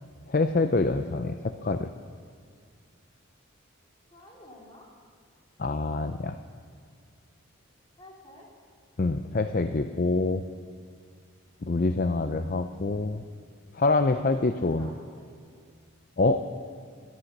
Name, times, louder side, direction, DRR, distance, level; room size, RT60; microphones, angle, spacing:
voice 1, 0.3-1.9 5.6-6.4 9.0-10.4 11.6-13.2 13.7-14.9 16.2-16.4, left 3 dB, 40° left, 8 dB, 0.5 m, -26 dB
voice 2, 4.1-4.9 8.0-8.5 14.4-15.6, left 1 dB, 25° left, -3 dB, 3.3 m, -51 dB
17.5 x 12.5 x 6.6 m, 2.1 s
head